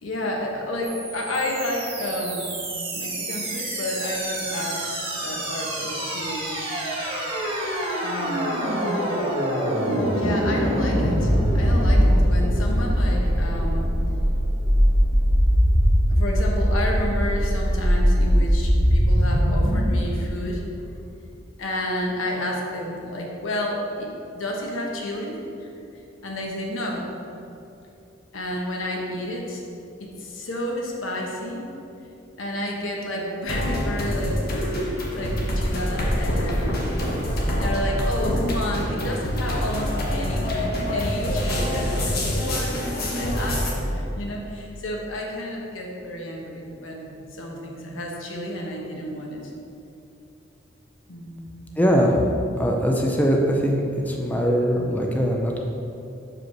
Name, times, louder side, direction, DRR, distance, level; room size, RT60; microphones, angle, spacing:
voice 1, 0.0-2.5 2.9-4.9 5.2-6.5 8.0-8.8 10.1-13.9 15.0-15.2 15.5-20.9 21.6-24.1 24.3-25.7 26.2-27.0 28.3-29.6 30.0-31.6 32.4-36.8 37.6-42.7 43.0-49.4 51.1-51.6, left 1 dB, 85° left, -1 dB, 1.1 m, -31 dB
sound 1, 0.8-19.8, equal, 30° right, 1.2 m, -22 dB
sound 2, 33.5-43.7, equal, 50° left, 1.2 m, -25 dB
voice 2, 51.8-52.2 52.6-55.6, equal, 10° left, 0 dB, 0.5 m, -21 dB
5.0 x 4.7 x 6.0 m, 2.8 s
head